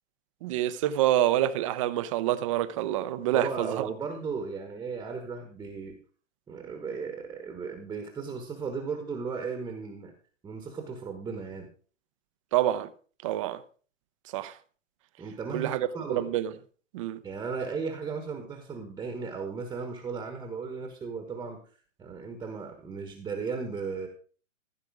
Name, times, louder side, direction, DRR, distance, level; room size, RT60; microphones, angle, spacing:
voice 1, 0.4-3.9 12.5-12.9 13.2-13.6 14.3-14.5 15.5-16.5 16.9-17.2, right 12 dB, 25° right, 0.7 m, -27 dB
voice 2, 3.3-6.0 6.5-10.1 10.4-11.7 15.2-16.3 17.2-21.6 22.0-24.1, right 5 dB, 10° right, 1.2 m, -36 dB
15.0 x 6.7 x 4.9 m
hypercardioid pair, 150°, 39 cm